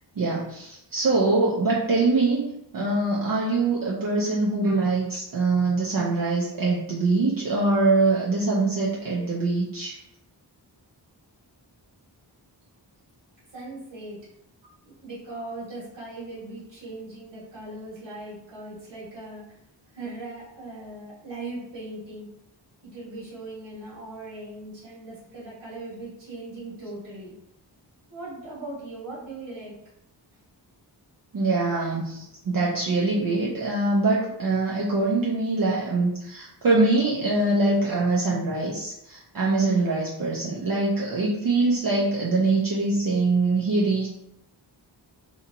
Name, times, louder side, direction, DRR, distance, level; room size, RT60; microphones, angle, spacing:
voice 1, 0.2-2.4 2.7-10.0 31.3-44.1, right 3 dB, 50° right, -4 dB, 0.6 m, -23 dB
voice 2, 13.5-14.2 14.8-19.4 19.9-22.3 22.9-27.3 28.1-29.7, right 2 dB, 75° right, -9 dB, 1.5 m, -39 dB
2.8 x 2.7 x 2.6 m, 0.80 s
wide cardioid pair, 90°, 43 cm